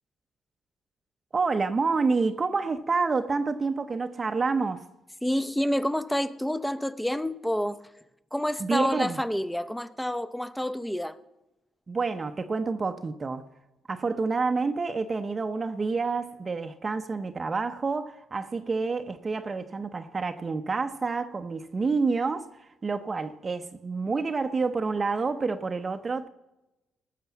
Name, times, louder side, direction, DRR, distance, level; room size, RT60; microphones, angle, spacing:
voice 1, 1.3-4.9 8.6-9.2 11.9-13.5 13.9-26.3, right 4 dB, 30° right, 0.7 m, -28 dB
voice 2, 5.2-7.8 8.3-11.1, equal, 5° left, 0.7 m, -28 dB
18.5 x 6.7 x 7.1 m
cardioid pair, 90°, 0 cm